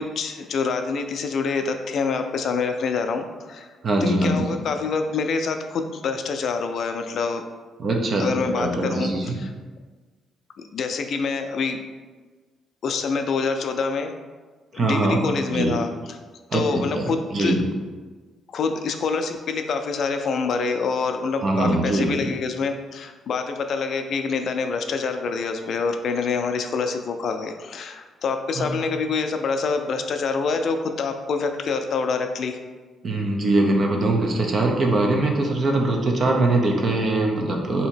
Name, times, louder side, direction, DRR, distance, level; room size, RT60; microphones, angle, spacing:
voice 1, 0.0-3.7 4.0-7.4 8.2-9.1 9.4-9.5 10.7-11.8 12.8-14.1 14.7-16.2 16.5-17.6 18.5-32.6, left 4 dB, 65° left, 6 dB, 0.3 m, -26 dB
voice 2, 3.8-4.5 7.8-8.3 8.6-9.4 14.7-15.2 15.5-15.8 16.5-16.6 16.9-17.6 21.4-22.3 28.6-28.7 33.0-37.9, right 2 dB, 50° right, 1 dB, 0.7 m, -22 dB
2.8 x 2.8 x 4.4 m, 1.4 s
cardioid pair, 90°, 0 cm